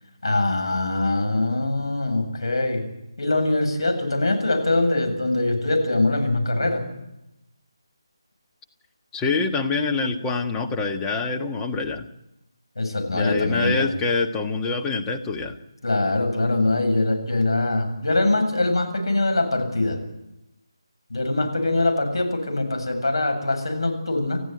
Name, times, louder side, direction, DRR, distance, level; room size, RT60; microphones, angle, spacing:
voice 1, 0.2-2.9 3.2-6.8 12.8-13.9 15.8-20.0 21.1-24.4, left 2 dB, 65° left, 5 dB, 7.6 m, -23 dB
voice 2, 9.1-12.1 13.1-15.6, left 4 dB, 10° left, 3 dB, 1.5 m, -25 dB
28.5 x 15.0 x 9.5 m, 0.89 s
figure-of-eight pair, 155°, 3 cm